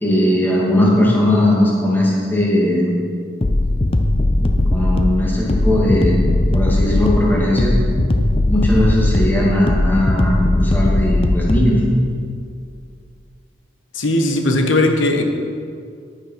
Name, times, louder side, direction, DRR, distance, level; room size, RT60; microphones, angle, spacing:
voice 1, 0.0-2.9 4.4-6.2 6.5-7.8 8.5-11.8, left 1 dB, 10° left, -5 dB, 2.3 m, -18 dB
sound 1, 3.4-11.7, left 1 dB, 30° left, 0.6 m, -18 dB
voice 2, 13.9-15.2, left 1 dB, 75° left, 4 dB, 1.1 m, -17 dB
9.9 x 9.2 x 5.8 m, 2.3 s
head